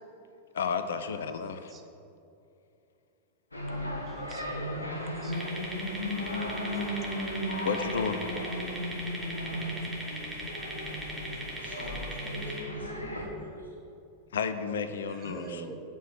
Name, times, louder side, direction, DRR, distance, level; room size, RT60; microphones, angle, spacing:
voice 1, 0.5-1.7 7.6-8.2 14.3-15.7, left 6 dB, 65° left, 10 dB, 0.5 m, -32 dB
sound 1, 3.5-13.2, equal, 80° left, 1.1 m, -35 dB
voice 2, 4.1-4.8 5.1-5.4 6.7-6.8 10.4-10.5 11.2-11.7 15.2-15.8, right 5 dB, 25° right, 4 dB, 0.9 m, -46 dB
sound 2, 5.3-12.6, right 1 dB, 5° right, 2.1 m, -40 dB
voice 3, 11.6-13.7, right 1 dB, 75° right, -3 dB, 2.1 m, -44 dB
7.2 x 6.0 x 7.2 m, 2.6 s
figure-of-eight pair, 90°, 0 cm